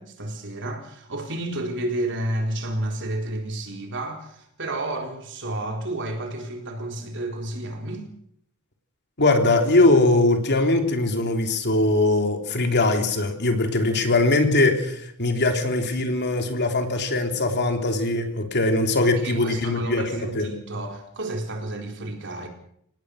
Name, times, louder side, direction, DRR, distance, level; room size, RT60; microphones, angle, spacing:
voice 1, 0.0-8.1 19.0-22.5, right 1 dB, 55° right, 4.2 m, -31 dB
voice 2, 9.2-20.5, left 2 dB, 50° left, 3.2 m, -21 dB
26.5 x 19.0 x 6.5 m
head